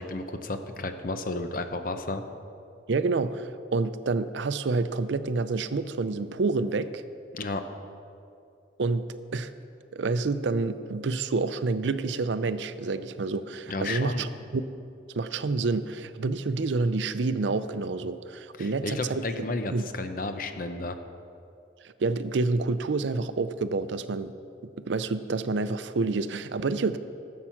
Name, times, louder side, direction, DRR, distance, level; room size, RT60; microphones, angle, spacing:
voice 1, 0.0-2.2 7.3-7.6 13.7-14.3 18.6-21.0, left 2 dB, 50° left, 8 dB, 0.7 m, -32 dB
voice 2, 2.9-7.0 8.8-9.1 9.3-9.5 9.9-14.6 15.2-19.4 19.7-19.8 21.8-24.3 24.8-27.0, right 3 dB, 75° right, 13 dB, 0.5 m, -28 dB
14.0 x 7.4 x 5.9 m, 2.5 s
head